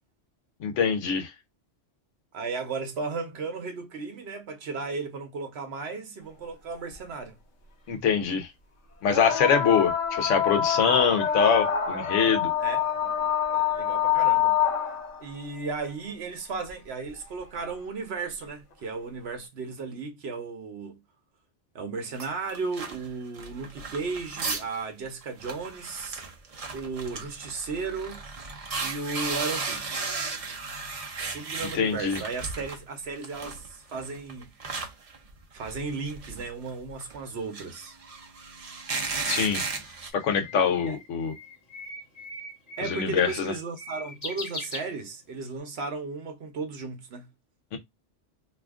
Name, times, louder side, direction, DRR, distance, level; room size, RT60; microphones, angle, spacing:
voice 1, 0.6-1.3 7.9-8.5 9.0-12.5 31.7-32.2 39.3-39.6 40.1-41.3 42.8-43.5 47.7-47.8, left 6 dB, 85° left, 1.1 m, -24 dB
voice 2, 2.3-7.4 12.6-14.6 15.2-21.0 21.7-26.2 26.7-28.3 28.8-30.1 31.3-34.8 35.5-38.0 40.8-41.0 42.8-47.3, right 4 dB, 65° right, 1.0 m, -35 dB
sound 1, 6.9-7.0 9.1-15.2 16.7-16.8 17.6-17.7, left 9 dB, 50° left, 0.9 m, -26 dB
sound 2, 22.2-24.8 25.1-25.2 25.4-32.8 33.2-40.1, right 4 dB, 40° right, 0.6 m, -35 dB
Bird, 39.3-45.5, left 2 dB, 35° left, 1.2 m, -41 dB
2.8 x 2.4 x 3.4 m
omnidirectional pair, 1.2 m